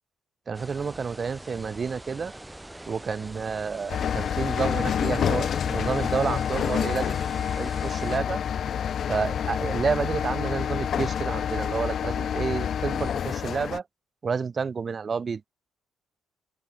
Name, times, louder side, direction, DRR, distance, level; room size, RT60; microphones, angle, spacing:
sound 1, 0.5-8.2, right 1 dB, 10° right, 1.1 m, -43 dB
voice 1, 0.5-2.3 2.9-7.2 7.6-8.4 9.1-13.8 14.2-15.4, right 5 dB, 40° right, 0.3 m, -30 dB
sound 2, 3.2-8.2, right 14 dB, 85° right, 3.5 m, -63 dB
sound 3, 3.9-13.8, left 8 dB, 60° left, 0.4 m, -28 dB
open air
cardioid pair, 90°, 0 cm